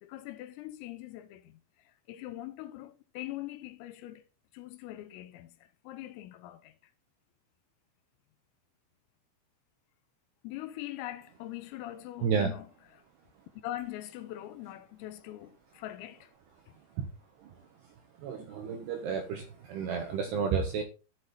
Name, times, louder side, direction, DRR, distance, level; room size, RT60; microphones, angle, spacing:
voice 1, 0.0-1.6 1.9-4.2 4.5-6.7 10.4-12.7 13.6-16.3, left 14 dB, 85° left, 3.5 m, -42 dB
voice 2, 12.2-12.5 17.0-17.1 17.4-17.7 18.2-20.8, right 6 dB, 75° right, 2.6 m, -31 dB
14.0 x 6.2 x 4.0 m
omnidirectional pair, 6.0 m